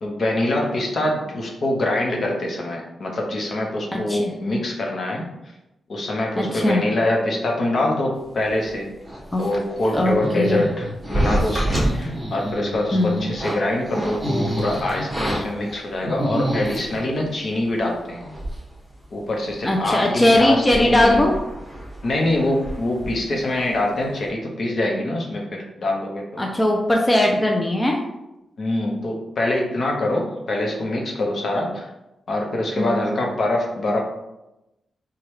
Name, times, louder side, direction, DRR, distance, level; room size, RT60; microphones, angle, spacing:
voice 1, 0.0-5.3 5.9-8.9 9.4-18.2 19.1-21.3 22.0-26.4 28.6-31.9 32.3-34.0, left 1 dB, 60° left, 0 dB, 0.9 m, -24 dB
voice 2, 3.9-4.3 6.4-6.8 9.3-9.4 9.9-10.7 12.9-13.2 19.6-21.3 26.4-28.0 32.8-33.1, left 1 dB, 15° left, 0 dB, 0.5 m, -19 dB
sound 1, 9.0-17.1 17.8-17.9 18.1-18.7 19.0-19.1 19.6-19.9 20.2-23.8 24.0-24.3, right 1 dB, 15° right, 1.3 m, -27 dB
4.6 x 2.3 x 3.2 m, 0.94 s
cardioid pair, 85°, 0 cm